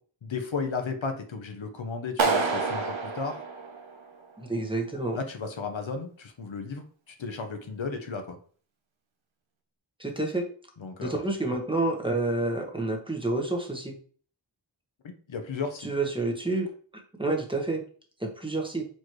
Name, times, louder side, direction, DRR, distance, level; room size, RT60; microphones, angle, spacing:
voice 1, 0.2-3.4 5.1-8.4 10.8-11.2 15.3-15.9, left 4 dB, 80° left, 6 dB, 0.8 m, -34 dB
Clapping, 2.2-4.2, right 4 dB, 90° right, 0.8 m, -28 dB
voice 2, 4.4-5.2 10.0-10.4 11.0-13.9 15.8-16.7 17.2-17.8 18.2-18.9, right 2 dB, 10° right, 1 dB, 1.1 m, -29 dB
4.4 x 3.1 x 3.0 m, 0.43 s
wide cardioid pair, 40°, 46 cm